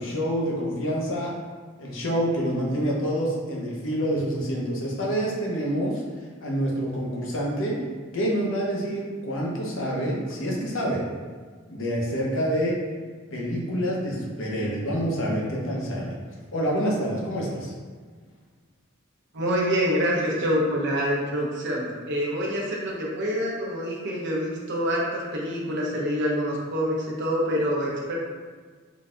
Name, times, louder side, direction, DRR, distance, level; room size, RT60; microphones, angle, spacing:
voice 1, 0.0-1.3 1.8-6.0 6.4-7.8 8.1-11.0 11.7-12.8 13.3-16.2 16.5-17.7, equal, 65° left, -3 dB, 0.8 m, -27 dB
voice 2, 19.3-28.2, equal, 60° right, -3 dB, 0.8 m, -26 dB
3.8 x 2.3 x 3.7 m, 1.5 s
head